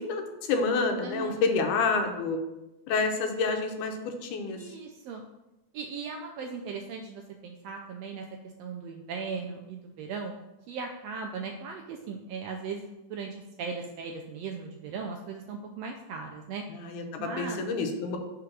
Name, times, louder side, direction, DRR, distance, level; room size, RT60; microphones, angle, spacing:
voice 1, 0.0-2.4 2.9-4.0 4.2-4.6 16.7-18.2, left 4 dB, 90° left, 4 dB, 2.3 m, -28 dB
voice 2, 1.0-1.4 4.5-5.2 5.7-8.3 8.6-10.4 10.7-16.6 17.2-17.6, right 5 dB, 85° right, 3 dB, 1.5 m, -38 dB
5.0 x 4.6 x 6.0 m, 0.96 s
omnidirectional pair, 3.5 m